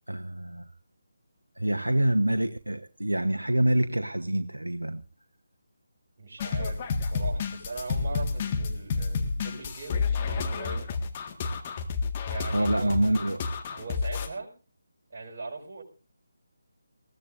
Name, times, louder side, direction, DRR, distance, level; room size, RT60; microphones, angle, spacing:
voice 1, 0.1-0.7 1.6-5.0 12.5-13.4, right 1 dB, 85° right, 7 dB, 1.1 m, -26 dB
voice 2, 6.2-10.9 12.3-13.2 13.7-14.5 15.1-15.8, right 3 dB, 40° right, 0 dB, 5.8 m, -40 dB
sound 1, 6.4-14.3, left 4 dB, 30° left, 1.8 m, -30 dB
21.0 x 16.5 x 2.6 m, 0.34 s
figure-of-eight pair, 150°, 0 cm